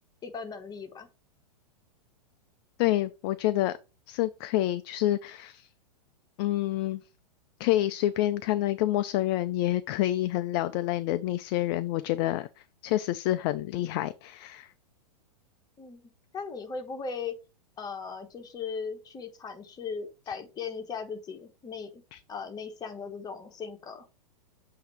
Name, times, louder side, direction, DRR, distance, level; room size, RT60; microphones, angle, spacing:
voice 1, 0.2-1.1 15.8-16.0 16.3-17.3 17.8-22.0 22.3-24.0, left 5 dB, 20° left, 1.2 m, -38 dB
voice 2, 2.8-3.8 4.1-5.7 6.4-7.0 7.6-12.5 12.8-14.7 22.1-22.2, left 15 dB, 40° left, 0.4 m, -28 dB
7.8 x 2.8 x 4.7 m
hypercardioid pair, 115°, 21 cm